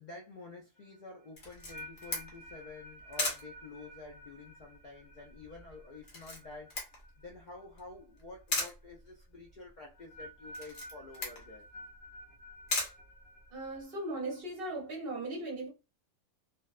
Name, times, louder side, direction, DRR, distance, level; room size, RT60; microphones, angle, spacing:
voice 1, 0.0-6.7 7.2-11.7, left 3 dB, 60° left, 0.4 m, -49 dB
sound 1, 0.8-7.9 8.1-8.6 9.8-14.4, equal, 85° left, 1.1 m, -52 dB
Camera, 1.4-13.8, left 2 dB, 45° left, 0.9 m, -40 dB
voice 2, 13.5-15.7, right 2 dB, 50° right, 0.9 m, -38 dB
2.6 x 2.1 x 2.3 m
omnidirectional pair, 1.4 m